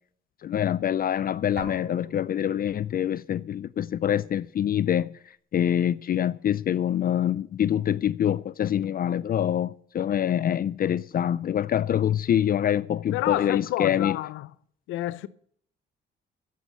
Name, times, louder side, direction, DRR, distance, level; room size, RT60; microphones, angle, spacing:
voice 1, 0.4-5.1 5.5-14.2, left 10 dB, 45° left, 0.4 m, -25 dB
sound 1, 1.6-3.4, right 4 dB, 65° right, 4.1 m, -45 dB
voice 2, 13.1-14.5 14.9-15.3, left 15 dB, 90° left, 0.6 m, -29 dB
11.0 x 7.5 x 9.5 m
cardioid pair, 90°, 20 cm